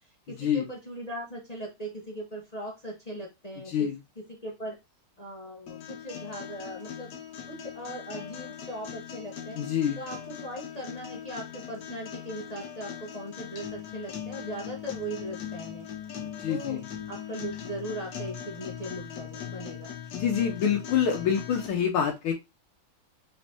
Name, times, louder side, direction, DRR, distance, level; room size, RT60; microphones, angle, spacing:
voice 1, 0.3-3.9 4.2-4.7 5.2-7.1 7.5-9.6 10.0-15.9 16.5-16.8 17.1-19.9, right 1 dB, 40° left, -2 dB, 0.5 m, -39 dB
voice 2, 3.7-4.0 9.6-10.0 16.2-16.9 20.1-22.3, left 8 dB, 75° left, 2 dB, 1.5 m, -27 dB
sound 1, 5.7-21.7, left 9 dB, 60° left, 1.3 m, -40 dB
5.3 x 3.6 x 2.7 m, 0.23 s
omnidirectional pair, 2.4 m